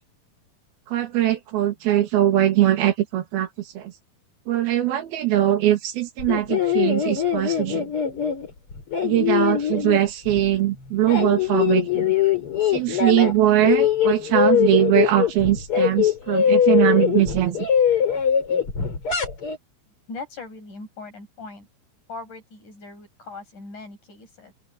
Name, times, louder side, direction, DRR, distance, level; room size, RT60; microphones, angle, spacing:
voice 1, 0.9-3.5 3.8-3.9 4.5-7.9 9.0-12.1 12.7-17.7, right 13 dB, 85° right, 3.8 m, -21 dB
sound 1, 6.2-10.6 10.9-13.4 13.6-19.6, left 9 dB, 35° left, 4.6 m, -22 dB
voice 2, 20.1-21.7 22.1-24.5, left 3 dB, 55° left, 9.3 m, -39 dB
open air
omnidirectional pair, 4.3 m